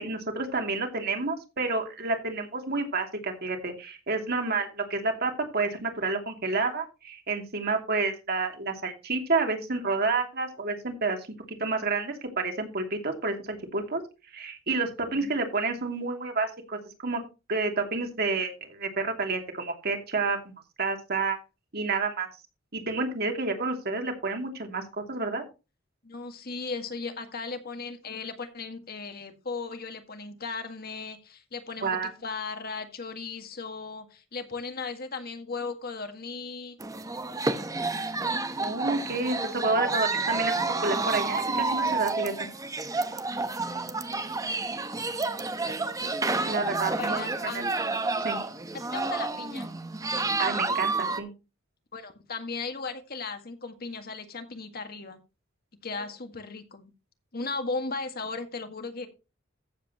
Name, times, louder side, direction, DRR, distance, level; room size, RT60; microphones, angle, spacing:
voice 1, 0.0-14.0 14.3-17.2 17.5-21.4 21.7-22.3 22.7-24.8 25.1-25.4 31.8-32.1 38.6-42.3 46.5-47.6 48.2-48.4 50.4-51.3 55.9-56.0, right 3 dB, 55° right, 2.7 m, -29 dB
voice 2, 15.1-15.4 26.0-36.8 46.9-47.6 48.7-49.7 51.9-55.2 55.8-56.9 57.3-59.1, left 4 dB, 50° left, 1.8 m, -36 dB
sound 1, 36.8-51.2, right 3 dB, 20° right, 0.9 m, -30 dB
14.5 x 8.0 x 3.0 m
head